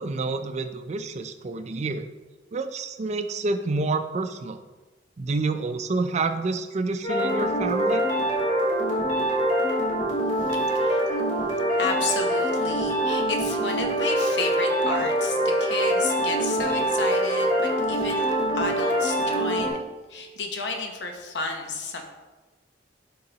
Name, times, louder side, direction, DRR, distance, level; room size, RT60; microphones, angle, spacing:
voice 1, 0.0-2.1 2.5-4.6 5.2-8.0, right 3 dB, 40° right, 8 dB, 0.4 m, -28 dB
sound 1, 7.0-19.7, right 1 dB, 40° left, 2.0 m, -24 dB
voice 2, 10.4-11.4 11.7-19.8 20.1-22.0, left 3 dB, 80° left, 3 dB, 0.9 m, -32 dB
11.0 x 3.7 x 2.9 m, 1.2 s
head